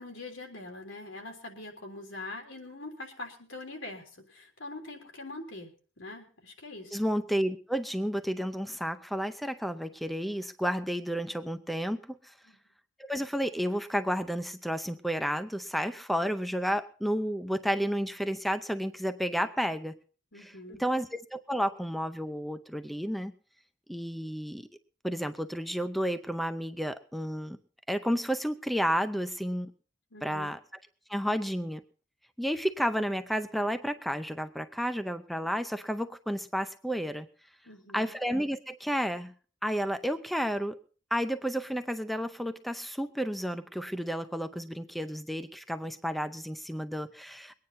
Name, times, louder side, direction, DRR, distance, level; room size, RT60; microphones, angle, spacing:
voice 1, 0.0-5.7 6.0-7.0 12.4-12.6 20.3-20.8 30.1-30.5 37.6-38.1, left 2 dB, 85° left, 3 dB, 3.4 m, -43 dB
voice 2, 6.9-12.3 13.0-20.0 20.4-20.5 20.8-23.3 23.9-24.7 25.0-27.6 27.9-29.7 30.2-30.6 31.1-31.8 32.4-37.3 37.9-39.3 39.6-40.8 41.1-47.5, equal, ahead, 9 dB, 0.6 m, -31 dB
22.5 x 9.6 x 4.1 m, 0.39 s
head